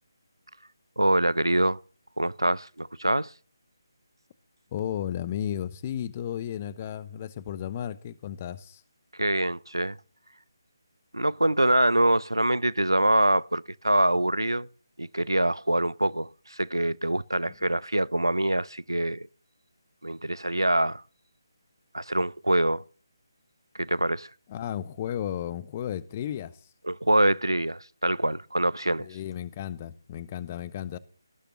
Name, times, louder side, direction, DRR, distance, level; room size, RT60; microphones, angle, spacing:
voice 1, 1.0-1.8 2.2-3.3 9.2-10.0 11.1-14.7 15.0-19.3 20.0-21.0 21.9-22.8 23.7-24.3 26.9-29.1, right 1 dB, 80° right, 0.6 m, -24 dB
voice 2, 4.7-8.8 24.5-26.6 29.0-31.0, left 10 dB, 25° left, 0.7 m, -34 dB
18.0 x 6.8 x 7.3 m
figure-of-eight pair, 150°, 2 cm